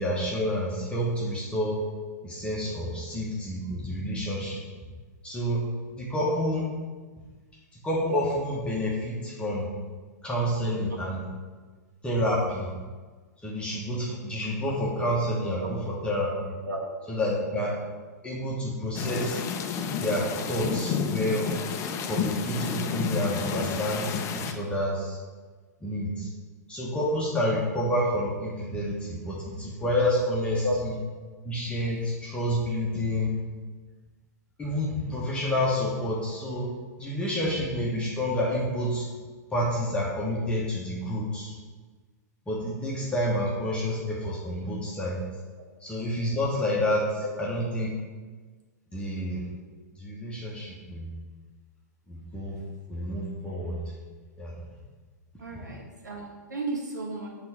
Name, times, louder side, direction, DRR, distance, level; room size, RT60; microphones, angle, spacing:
voice 1, 0.0-1.8 2.2-4.6 5.2-5.6 5.9-6.7 7.8-9.7 10.2-11.2 12.0-12.7 13.4-16.5 17.1-17.8 18.2-19.4 20.0-21.5 22.1-25.2 25.8-26.3 26.7-30.9 31.4-33.4 34.6-36.7 37.0-39.1 39.5-41.5 42.5-45.2 45.8-47.9 48.9-49.4 50.0-51.1 52.1-52.6 52.9-53.8 54.4-54.5, equal, 10° left, -5 dB, 1.2 m, -29 dB
sound 1, 18.9-24.5, left 6 dB, 30° left, 0.5 m, -31 dB
voice 2, 55.4-57.3, right 1 dB, 80° right, -2 dB, 1.4 m, -33 dB
7.6 x 3.3 x 4.3 m, 1.4 s
figure-of-eight pair, 100°, 10 cm